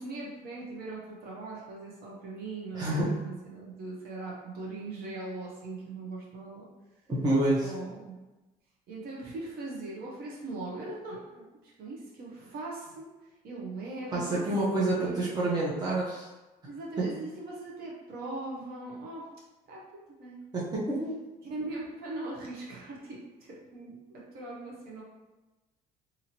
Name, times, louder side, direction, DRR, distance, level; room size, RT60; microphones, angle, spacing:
voice 1, 0.0-3.0 3.2-6.6 7.6-8.2 8.9-11.4 11.8-13.1 13.4-14.5 14.9-15.3 16.7-19.3 19.7-19.8 20.2-20.4 21.5-25.0, right 2 dB, 65° right, -4 dB, 0.8 m, -40 dB
voice 2, 2.7-3.1 7.1-7.7 14.1-16.3 17.0-17.1 20.5-21.1, right 2 dB, 25° right, -6 dB, 0.7 m, -28 dB
2.8 x 2.7 x 2.8 m, 1.1 s
cardioid pair, 110°, 17 cm